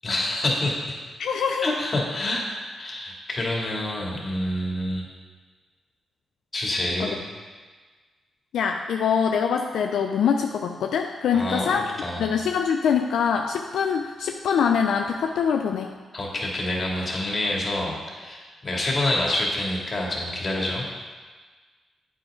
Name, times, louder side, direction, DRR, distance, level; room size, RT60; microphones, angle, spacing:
voice 1, 0.0-0.8 1.6-5.0 6.5-7.2 11.3-12.3 16.1-20.8, left 1 dB, 40° left, -3 dB, 2.7 m, -27 dB
voice 2, 1.2-1.7 7.0-7.2 8.5-11.9 12.2-15.9, left 7 dB, 80° left, 4 dB, 0.4 m, -24 dB
9.3 x 8.4 x 3.8 m, 1.4 s
supercardioid pair, 55°, 0 cm